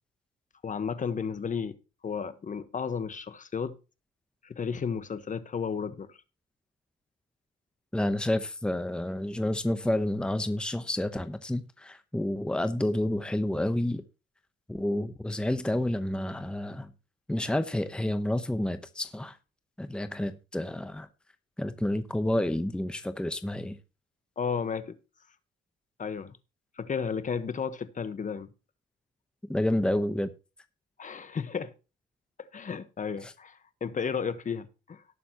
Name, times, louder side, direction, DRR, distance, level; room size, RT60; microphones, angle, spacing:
voice 1, 0.6-1.7 2.0-3.8 4.4-6.2 24.4-25.0 26.0-26.3 26.8-28.5 31.0-31.7 32.4-35.0, left 6 dB, 40° left, 1.3 m, -33 dB
voice 2, 7.9-14.0 14.7-16.9 17.3-19.4 19.8-21.1 21.6-23.8 29.5-30.3 33.2-33.3, left 1 dB, 5° left, 0.9 m, -29 dB
18.0 x 7.0 x 3.0 m
cardioid pair, 90°, 20 cm